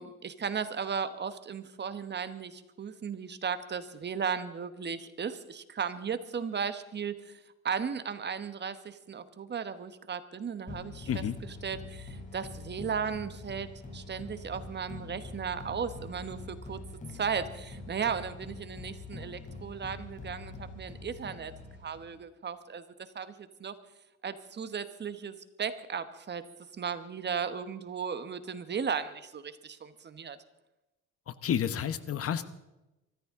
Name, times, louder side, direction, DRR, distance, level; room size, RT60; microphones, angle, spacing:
voice 1, 0.0-7.3 7.6-11.2 11.6-16.8 17.1-21.5 21.8-23.7 24.2-26.4 26.8-30.4, right 6 dB, 35° right, 12 dB, 1.1 m, -36 dB
sound 1, 10.7-22.2, left 3 dB, 25° left, 3.9 m, -45 dB
voice 2, 31.3-32.5, left 8 dB, 50° left, 13 dB, 1.0 m, -30 dB
24.0 x 14.5 x 3.7 m, 0.98 s
cardioid pair, 115°, 30 cm